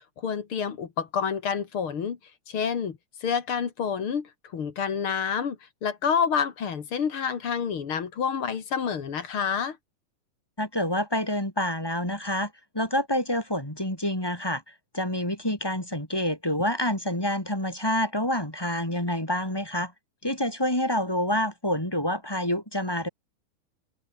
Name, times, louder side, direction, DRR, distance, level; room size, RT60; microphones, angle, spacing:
voice 1, 0.2-2.2 2.5-5.6 5.8-9.8, left 7 dB, 45° left, 2.4 m, -28 dB
voice 2, 10.6-14.6 14.9-19.9 20.2-23.1, left 1 dB, 5° left, 4.4 m, -27 dB
open air
omnidirectional pair, 4.1 m